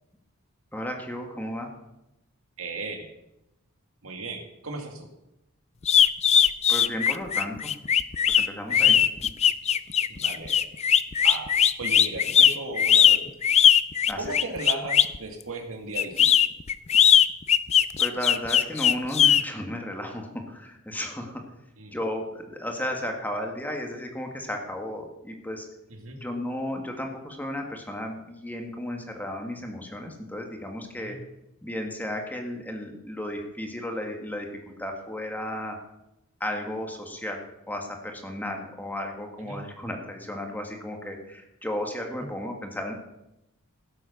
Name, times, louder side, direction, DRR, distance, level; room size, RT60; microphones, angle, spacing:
voice 1, 0.7-1.7 6.7-7.7 8.3-9.0 14.1-14.2 18.0-21.4 21.9-25.6 26.2-31.2 31.6-35.8 36.4-42.9, left 1 dB, 10° left, 2 dB, 1.7 m, -34 dB
voice 2, 2.6-3.1 4.0-5.1 8.7-9.1 10.1-10.7 11.2-11.5 11.8-13.3 14.2-16.3 21.8-22.0 25.9-26.2 31.0-31.2 39.4-39.6 42.2-42.3, right 3 dB, 70° right, 4 dB, 2.1 m, -36 dB
sound 1, 5.8-15.2 16.0-19.4, left 9 dB, 30° left, 0.4 m, -19 dB
16.5 x 7.8 x 6.4 m, 0.90 s
head